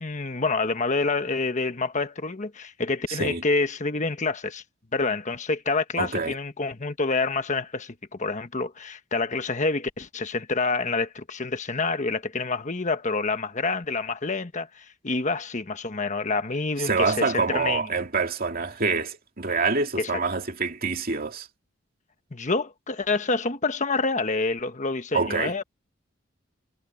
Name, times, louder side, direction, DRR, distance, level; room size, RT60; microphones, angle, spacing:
voice 1, 0.0-4.6 4.9-17.9 20.0-20.2 22.3-25.6, left 3 dB, 35° left, 1.3 m, -27 dB
voice 2, 3.1-3.4 6.0-6.4 16.8-21.5 25.1-25.5, right 4 dB, 45° right, 2.6 m, -26 dB
head